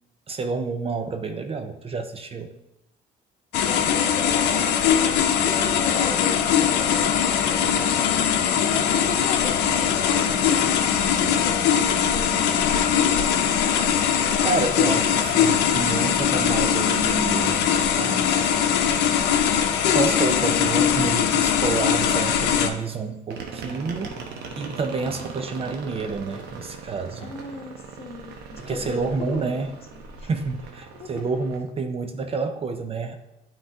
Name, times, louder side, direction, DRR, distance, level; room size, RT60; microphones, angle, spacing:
voice 1, 0.3-2.5 14.4-17.7 18.0-18.3 19.8-24.1 24.6-27.3 28.6-29.7 30.2-33.2, right 4 dB, 35° right, 7 dB, 0.6 m, -29 dB
sound 1, 3.5-22.7, left 8 dB, 90° left, 0.7 m, -21 dB
voice 2, 3.5-8.0 8.3-13.3 25.0-25.3 27.2-30.3 30.9-31.2, left 3 dB, 35° left, 2 dB, 1.2 m, -37 dB
sound 2, 23.3-31.6, right 5 dB, 80° right, 1.0 m, -39 dB
9.3 x 3.9 x 3.7 m, 0.95 s
cardioid pair, 110°, 17 cm